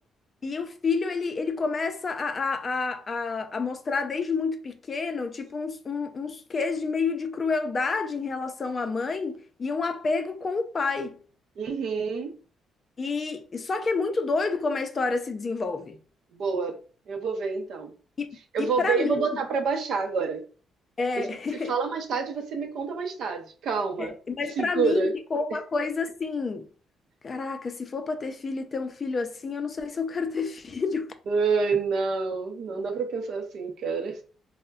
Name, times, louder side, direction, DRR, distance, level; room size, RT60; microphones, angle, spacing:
voice 1, 0.4-11.2 13.0-16.0 18.2-18.3 18.6-19.3 21.0-21.7 24.0-26.7 27.2-31.1, left 4 dB, 40° left, 0.4 m, -29 dB
voice 2, 11.6-12.3 16.3-16.8 17.1-17.9 18.5-20.4 21.1-24.1 24.6-25.1 31.3-34.2, right 5 dB, 70° right, 0.6 m, -28 dB
3.4 x 2.1 x 2.2 m
cardioid pair, 90°, 0 cm